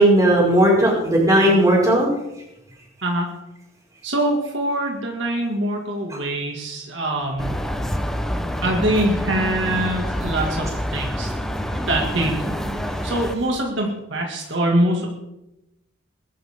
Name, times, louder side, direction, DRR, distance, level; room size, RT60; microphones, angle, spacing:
voice 1, 0.0-2.1, right 1 dB, 15° right, -3 dB, 5.5 m, -16 dB
voice 2, 4.0-7.5 8.6-11.3 11.9-12.6 13.0-15.1, right 1 dB, 70° right, 0 dB, 2.2 m, -23 dB
sound 1, 7.4-13.4, equal, ahead, 0.9 m, -27 dB
21.5 x 11.5 x 3.7 m, 0.90 s
head